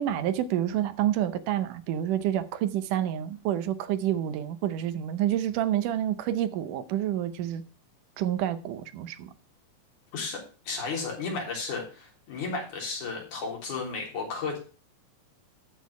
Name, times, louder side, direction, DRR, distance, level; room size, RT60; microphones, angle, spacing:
voice 1, 0.0-7.6 8.2-9.3, right 11 dB, 80° right, 2.3 m, -28 dB
voice 2, 10.7-14.6, left 4 dB, 70° left, 4.8 m, -33 dB
13.0 x 4.5 x 6.8 m
omnidirectional pair, 3.7 m